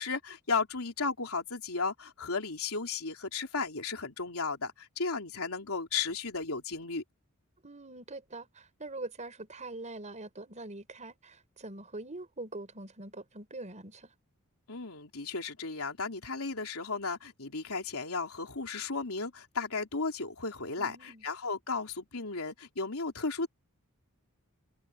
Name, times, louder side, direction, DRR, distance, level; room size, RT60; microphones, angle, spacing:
voice 1, 0.0-7.0 14.7-23.5, left 4 dB, 75° left, 3.5 m, -34 dB
voice 2, 7.6-14.1 20.7-21.2, right 2 dB, 35° right, 4.9 m, -43 dB
head